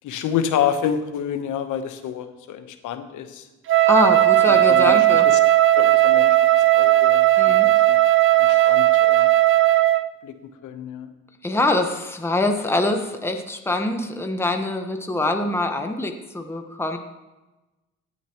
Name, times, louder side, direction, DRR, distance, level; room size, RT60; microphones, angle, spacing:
voice 1, 0.0-3.5 4.4-5.0 5.2-5.4 5.8-6.4 6.7-8.0 8.4-9.3 10.2-11.1, left 8 dB, 85° left, 9 dB, 1.1 m, -28 dB
Wind instrument woodwind instrument, 3.7-10.1, right 14 dB, 45° right, 0.4 m, -16 dB
voice 2, 3.9-5.3 7.4-7.7 8.5-8.7 11.4-17.0, left 2 dB, 10° left, 4 dB, 1.1 m, -24 dB
16.5 x 9.1 x 3.0 m, 1.1 s
cardioid pair, 90°, 30 cm